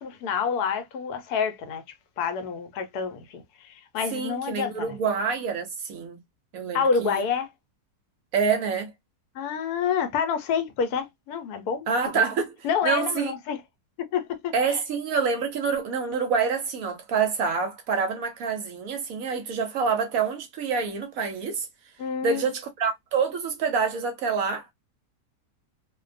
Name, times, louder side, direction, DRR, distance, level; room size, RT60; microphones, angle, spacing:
voice 1, 0.0-1.8 2.2-5.0 6.7-7.5 9.3-12.3 12.6-13.6 14.0-14.8 22.0-22.5, left 6 dB, 75° left, 1.1 m, -28 dB
voice 2, 4.1-6.2 6.5-7.2 8.3-8.9 11.9-12.6 12.8-13.3 14.5-21.7 22.2-24.7, right 5 dB, 70° right, 0.9 m, -27 dB
2.6 x 2.2 x 2.4 m
omnidirectional pair, 1.7 m